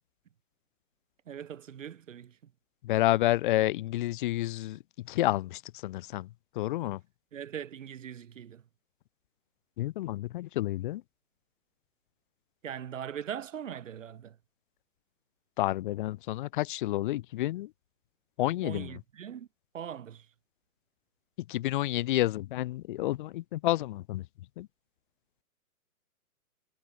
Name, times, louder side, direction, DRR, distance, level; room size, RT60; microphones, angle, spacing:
voice 1, 1.3-2.3 7.3-8.6 12.6-14.3 18.6-19.5 19.7-20.2, right 9 dB, 55° right, 6.6 m, -40 dB
voice 2, 2.8-6.3 6.5-7.0 9.8-11.0 15.6-17.7 18.4-19.0 21.5-24.3 24.6-24.7, left 16 dB, 30° left, 6.3 m, -30 dB
hypercardioid pair, 165°, 46 cm